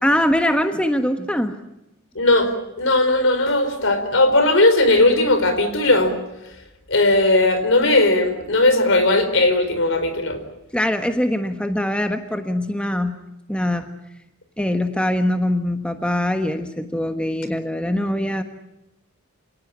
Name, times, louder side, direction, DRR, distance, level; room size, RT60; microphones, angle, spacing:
voice 1, 0.0-1.5 10.7-13.2 13.5-13.9 14.6-18.4, left 1 dB, 5° left, 6 dB, 1.3 m, -22 dB
voice 2, 2.1-2.5 2.8-6.2 6.9-10.4, left 2 dB, 60° left, 9 dB, 4.5 m, -17 dB
27.5 x 18.5 x 9.8 m, 0.92 s
head